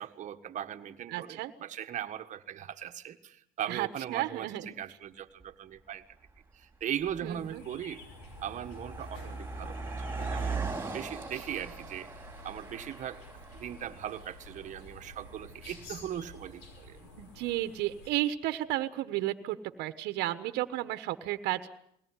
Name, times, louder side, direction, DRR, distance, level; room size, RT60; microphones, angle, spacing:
voice 1, 0.0-6.0 6.5-8.0 8.4-10.0 10.3-10.6 10.9-13.2 13.5-17.0, right 10 dB, 45° right, 8 dB, 1.6 m, -39 dB
voice 2, 1.1-1.5 3.7-4.7 7.2-7.6 17.2-21.7, right 15 dB, 70° right, 11 dB, 1.3 m, -33 dB
Car passing by, 5.4-5.5 6.3-6.5 6.8-17.2, right 4 dB, 10° right, 4.6 m, -40 dB
sound 1, 7.3-18.1, left 2 dB, 85° left, 5.8 m, -51 dB
21.5 x 17.5 x 9.8 m, 0.75 s
cardioid pair, 120°, 18 cm